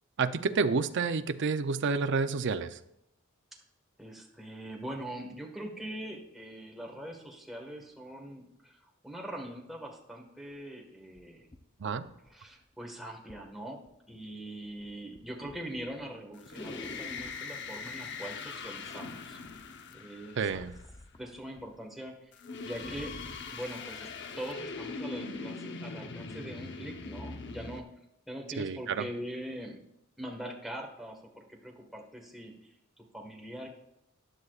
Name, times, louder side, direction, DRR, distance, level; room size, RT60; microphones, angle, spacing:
voice 1, 0.2-2.8 11.8-12.1 20.4-20.7 28.6-29.1, right 4 dB, 60° right, 10 dB, 0.5 m, -29 dB
voice 2, 4.0-11.4 12.3-13.8 14.1-19.4 19.9-20.4 21.2-22.3 22.6-23.1 23.5-24.1 24.4-27.8 28.3-29.8 30.2-33.7, right 1 dB, ahead, 0 dB, 1.5 m, -42 dB
sound 1, 11.1-12.6 13.3-13.5 13.8-14.3 14.6-17.5 18.6-19.1 19.4-21.7 22.0-22.1 22.5-23.6 24.2-24.3, left 1 dB, 25° left, 0.7 m, -48 dB
sound 2, 16.4-20.8 22.3-27.8, left 4 dB, 60° left, 0.8 m, -41 dB
14.5 x 9.8 x 2.4 m, 0.83 s
head